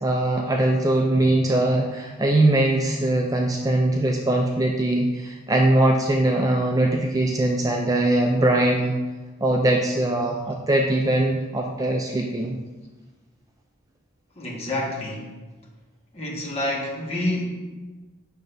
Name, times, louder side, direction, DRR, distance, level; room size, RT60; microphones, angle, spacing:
voice 1, 0.0-8.9 9.4-12.6, right 1 dB, 15° right, 1 dB, 0.4 m, -21 dB
voice 2, 14.3-15.3 16.1-17.5, left 1 dB, 30° left, -3 dB, 1.3 m, -28 dB
7.8 x 6.2 x 2.6 m, 1.2 s
head